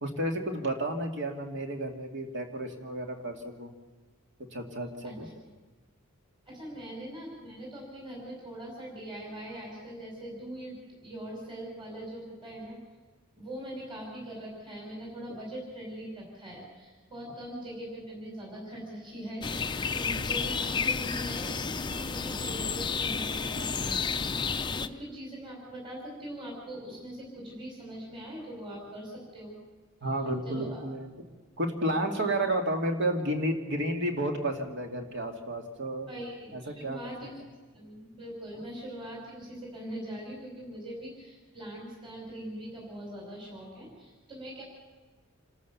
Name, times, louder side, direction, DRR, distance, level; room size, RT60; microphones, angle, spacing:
voice 1, 0.0-3.7 4.5-5.3 30.0-31.3 31.6-36.1 36.5-37.0, right 1 dB, 55° right, 3 dB, 2.5 m, -31 dB
voice 2, 6.5-12.8 13.4-24.0 24.7-29.6 30.4-30.8 32.1-32.4 36.1-37.4 37.7-44.6, right 1 dB, 25° right, -3 dB, 5.5 m, -42 dB
sound 1, 19.4-24.9, left 5 dB, 20° left, 0.6 m, -31 dB
28.0 x 13.5 x 7.1 m, 1.3 s
head